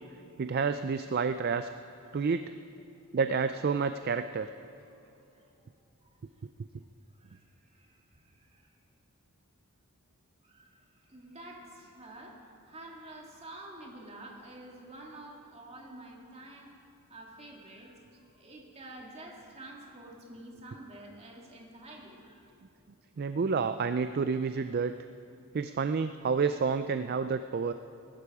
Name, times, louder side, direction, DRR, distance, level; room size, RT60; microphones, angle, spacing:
voice 1, 0.4-1.7 2.1-2.5 3.1-4.5 23.2-24.9 25.5-27.7, right 5 dB, 45° right, 10 dB, 0.3 m, -29 dB
voice 2, 5.3-5.6 6.0-6.2 7.2-8.7 10.4-16.7 17.1-18.0 18.3-22.6 27.4-27.5, right 1 dB, 30° right, -1 dB, 2.2 m, -49 dB
22.0 x 11.5 x 4.9 m, 2.7 s
head